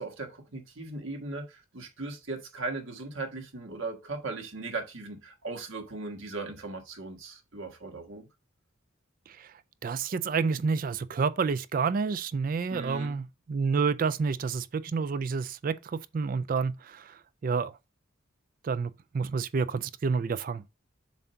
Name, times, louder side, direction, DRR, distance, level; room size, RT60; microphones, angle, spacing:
voice 1, 0.0-8.3 12.7-13.2, right 3 dB, 70° right, 1.4 m, -38 dB
voice 2, 9.8-17.2 17.4-17.7 18.6-20.6, right 5 dB, 40° right, 0.3 m, -29 dB
7.2 x 2.7 x 5.6 m
head